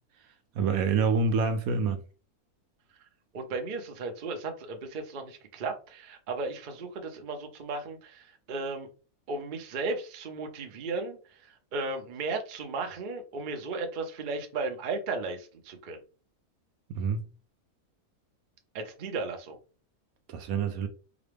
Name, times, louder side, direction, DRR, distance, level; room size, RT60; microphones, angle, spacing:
voice 1, 0.5-2.0 16.9-17.2 20.3-20.9, right 4 dB, 75° right, 1.0 m, -26 dB
voice 2, 3.3-8.9 9.3-16.0 18.7-19.6, right 3 dB, 50° right, 0.7 m, -35 dB
4.9 x 2.2 x 3.3 m
omnidirectional pair, 1.6 m